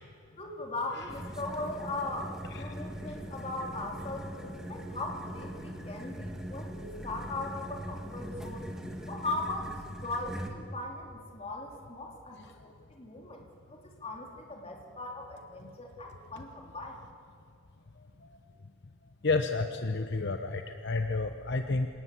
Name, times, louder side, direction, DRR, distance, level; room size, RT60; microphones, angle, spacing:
voice 1, 0.4-8.6 9.1-12.4 12.9-17.0, left 2 dB, 30° left, 1 dB, 3.2 m, -39 dB
sound 1, 1.1-10.5, equal, 5° right, 1.9 m, -41 dB
voice 2, 19.2-21.9, left 3 dB, 55° left, 6 dB, 0.9 m, -30 dB
27.0 x 18.5 x 8.4 m, 2.7 s
head